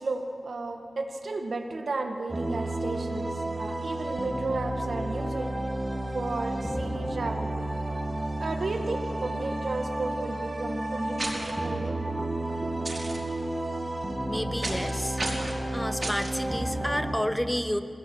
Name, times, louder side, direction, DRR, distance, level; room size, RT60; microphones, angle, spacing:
voice 1, 0.0-5.5 6.1-7.6 8.4-12.4 12.6-12.7, right 3 dB, 80° right, 4 dB, 1.9 m, -33 dB
sound 1, 2.3-17.2, right 1 dB, 25° right, 3.3 m, -31 dB
sound 2, 11.2-11.5 12.8-13.2 14.6-14.9 15.2-15.6 16.0-16.3, right 2 dB, 45° right, 5.1 m, -33 dB
voice 2, 14.3-15.2 15.7-17.8, equal, 10° left, 10 dB, 1.1 m, -30 dB
21.5 x 17.5 x 9.4 m, 2.6 s
wide cardioid pair, 60°, 0 cm